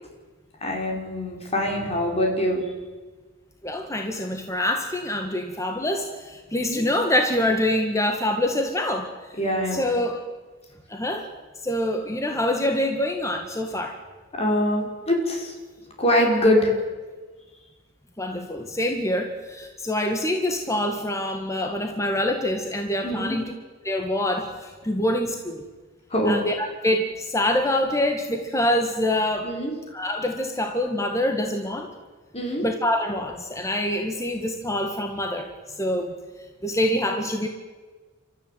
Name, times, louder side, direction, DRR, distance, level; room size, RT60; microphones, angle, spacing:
voice 1, 0.6-2.6 6.5-6.8 9.4-9.9 14.3-15.5 16.0-16.7 23.0-23.5 26.1-26.4 29.4-29.7 32.3-32.7, left 1 dB, 30° left, 0 dB, 5.4 m, -23 dB
voice 2, 3.6-9.1 9.7-10.2 10.9-11.3 11.6-14.0 18.2-23.5 23.8-25.6 26.3-29.5 29.9-31.9 32.6-35.5 35.8-36.1 36.6-37.5, left 1 dB, 15° left, 4 dB, 1.8 m, -25 dB
29.5 x 14.0 x 9.3 m, 1.3 s
head